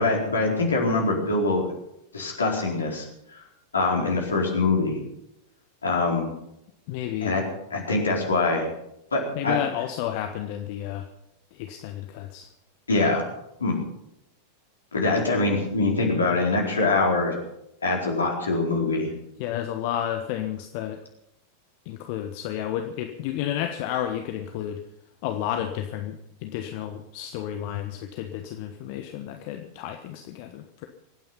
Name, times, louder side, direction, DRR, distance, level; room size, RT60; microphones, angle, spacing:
voice 1, 0.0-1.7 2.1-3.0 3.3-3.4 3.7-5.0 5.8-6.3 7.2-7.4 7.7-8.7 9.1-9.6 12.9-13.3 13.6-13.8 14.9-17.4 17.8-19.1, left 3 dB, 75° left, 0 dB, 4.3 m, -23 dB
voice 2, 6.9-7.4 9.3-11.1 11.5-12.5 19.4-21.0 21.8-24.8 25.2-26.2 26.4-30.9, left 11 dB, 45° left, 6 dB, 1.2 m, -31 dB
24.0 x 9.4 x 5.7 m, 0.83 s
figure-of-eight pair, 90°, 0 cm